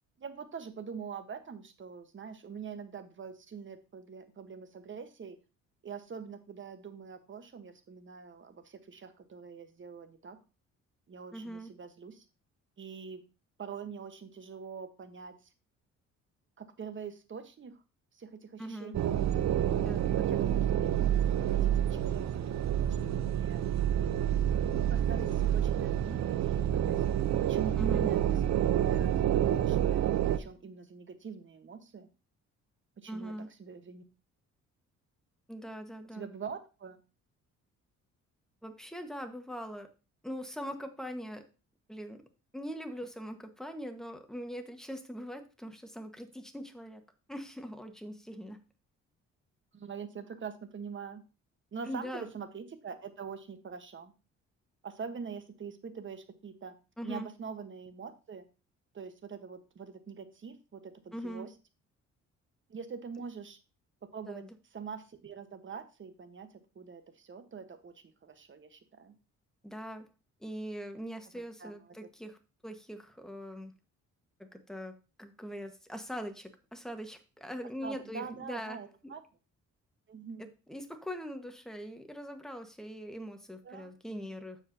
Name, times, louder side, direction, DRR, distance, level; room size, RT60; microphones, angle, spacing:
voice 1, 0.2-5.4 5.8-10.4 11.1-12.2 12.8-13.2 13.6-15.5 16.6-17.8 18.1-19.1 20.1-23.6 24.7-27.0 27.4-28.6 28.9-32.1 33.0-33.3 33.6-34.0 36.1-37.0 49.7-51.2 51.7-54.1 54.8-56.7 57.0-58.4 58.9-61.5 62.7-63.6 64.1-64.4 64.7-66.5 66.7-69.1 71.6-72.0 77.8-79.2 80.1-80.5 83.6-83.9, right 6 dB, 40° right, 9 dB, 1.2 m, -44 dB
voice 2, 11.3-11.7 18.6-19.0 19.8-20.1 27.8-28.1 33.1-33.5 35.5-36.3 38.6-39.9 40.2-41.4 41.9-42.2 42.5-47.0 47.3-48.6 51.9-52.3 57.0-57.3 61.1-61.5 64.2-64.5 69.6-70.0 70.4-72.4 72.6-73.7 74.4-79.1 80.4-84.6, equal, ahead, 6 dB, 1.3 m, -42 dB
sound 1, 18.9-30.4, right 10 dB, 65° right, 0.7 m, -28 dB
14.0 x 4.9 x 2.7 m, 0.31 s
cardioid pair, 90°, 30 cm